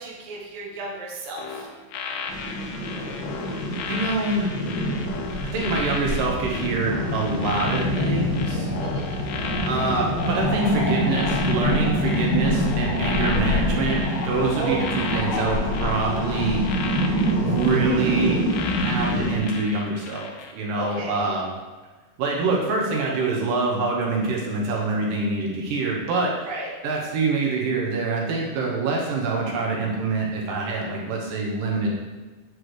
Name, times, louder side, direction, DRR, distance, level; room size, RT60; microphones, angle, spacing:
voice 1, 0.0-1.7 8.8-8.9 14.5-14.8 20.8-21.3 26.5-26.7, right 3 dB, 60° right, -3 dB, 2.3 m, -33 dB
sound 1, 1.4-20.5 20.9-21.1, left 5 dB, 90° left, 2.3 m, -35 dB
sound 2, 2.3-19.4, left 1 dB, 55° left, 1.6 m, -26 dB
voice 2, 3.8-4.6 5.4-8.7 9.7-16.7 17.4-21.5 22.2-26.5 26.8-32.0, right 3 dB, 80° right, -2 dB, 2.6 m, -25 dB
9.9 x 4.7 x 3.2 m, 1.3 s
omnidirectional pair, 3.8 m